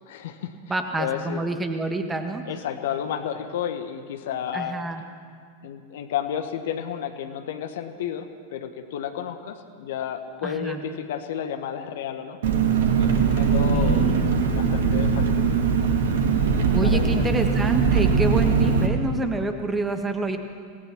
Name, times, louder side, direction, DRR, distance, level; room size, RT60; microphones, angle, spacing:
voice 1, 0.0-1.4 2.5-4.8 5.6-12.4 13.0-14.1 14.5-15.6 16.8-17.3, left 9 dB, 55° left, 8 dB, 1.4 m, -32 dB
voice 2, 0.7-2.4 4.5-5.0 10.4-10.8 13.7-14.3 16.7-20.4, right 2 dB, 15° right, 6 dB, 1.7 m, -27 dB
Engine, 12.4-18.9, right 5 dB, 60° right, 2.0 m, -21 dB
25.5 x 18.0 x 6.1 m, 2.1 s
figure-of-eight pair, 90°, 0 cm